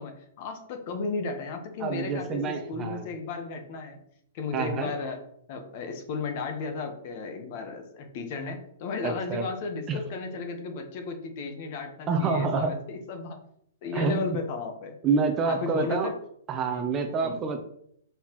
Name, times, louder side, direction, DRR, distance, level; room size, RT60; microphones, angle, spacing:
voice 1, 0.0-4.0 4.3-5.2 5.5-13.4 13.8-15.0 15.5-16.1 16.7-16.9 17.2-17.4, left 4 dB, 35° left, 5 dB, 1.1 m, -34 dB
voice 2, 1.8-3.1 4.5-4.9 9.0-9.5 9.9-10.0 12.1-12.7 13.9-14.2 15.0-16.1 16.5-17.6, right 4 dB, 15° right, 4 dB, 0.6 m, -27 dB
6.4 x 5.6 x 3.0 m, 0.69 s
hypercardioid pair, 170°, 0 cm